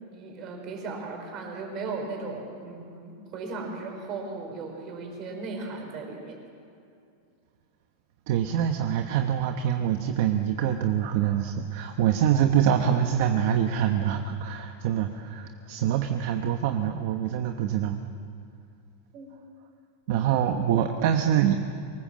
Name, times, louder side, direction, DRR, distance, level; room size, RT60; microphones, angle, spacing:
voice 1, 0.1-6.4 19.1-19.3, right 3 dB, 30° right, 2 dB, 4.7 m, -36 dB
voice 2, 8.3-18.0 20.1-21.5, right 9 dB, 50° right, 5 dB, 1.1 m, -25 dB
24.0 x 20.0 x 7.6 m, 2.5 s
supercardioid pair, 175°, 0 cm